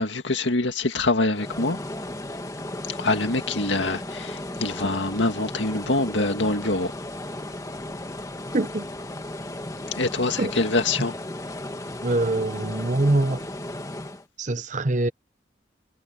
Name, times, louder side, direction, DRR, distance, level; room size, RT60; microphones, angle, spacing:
voice 1, 0.0-1.8 2.9-6.9 9.9-11.1, left 2 dB, 85° left, 2.0 m, -25 dB
sound 1, 1.3-14.2, left 1 dB, 20° left, 1.7 m, -35 dB
voice 2, 8.5-8.9 10.4-10.5 12.0-13.5 14.4-15.1, right 2 dB, 40° right, 1.0 m, -23 dB
head